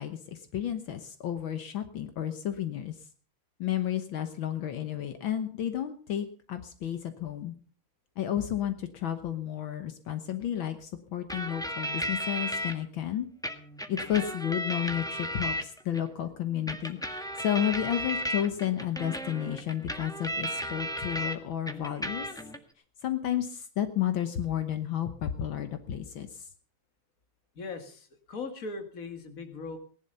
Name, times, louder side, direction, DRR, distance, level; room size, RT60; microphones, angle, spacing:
voice 1, 0.0-3.0 3.6-7.5 8.2-13.3 13.9-22.3 23.0-26.5, left 10 dB, 75° left, 9 dB, 1.9 m, -32 dB
sound 1, 11.3-12.7 13.4-16.0 16.7-21.4 21.7-22.6, equal, ahead, 1.1 m, -34 dB
voice 2, 27.6-29.8, left 3 dB, 45° left, 7 dB, 2.3 m, -39 dB
18.5 x 11.5 x 5.6 m, 0.43 s
omnidirectional pair, 2.2 m